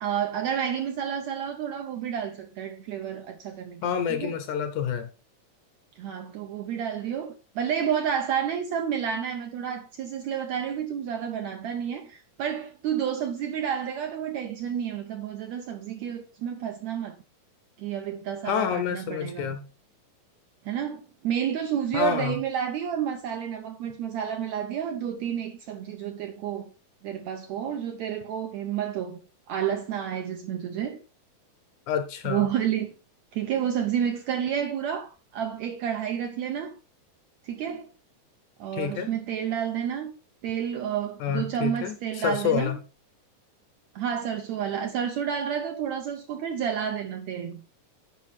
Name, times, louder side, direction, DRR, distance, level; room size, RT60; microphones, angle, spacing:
voice 1, 0.0-4.3 6.0-17.2 17.8-19.6 20.6-26.7 27.0-29.2 29.5-31.0 32.2-32.9 33.3-36.7 37.4-37.9 38.6-40.1 40.4-42.8 43.9-47.6, right 8 dB, 75° right, 1.6 m, -30 dB
voice 2, 3.8-5.1 18.4-19.6 21.9-22.4 31.9-32.5 38.7-39.1 41.2-42.8, left 8 dB, 70° left, 2.0 m, -28 dB
9.8 x 5.2 x 4.2 m
omnidirectional pair, 4.0 m